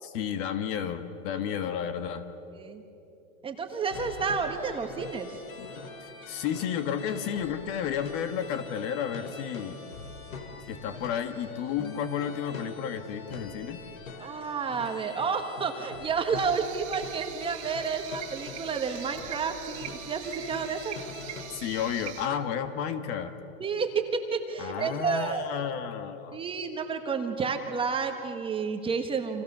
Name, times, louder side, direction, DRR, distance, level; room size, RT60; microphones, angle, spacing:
voice 1, 0.0-2.2 5.6-5.8 6.3-9.8 10.7-13.8 21.5-23.3 24.6-26.4, left 8 dB, 35° left, 9 dB, 1.6 m, -32 dB
voice 2, 3.4-5.4 14.2-20.9 23.6-25.4 26.3-29.4, right 5 dB, 15° right, 5 dB, 1.4 m, -30 dB
sound 1, 3.9-21.6, left 4 dB, 80° left, 3.6 m, -44 dB
sound 2, 16.3-22.3, right 12 dB, 55° right, 2.1 m, -42 dB
29.5 x 26.5 x 6.8 m, 3.0 s
hypercardioid pair, 150°, 40 cm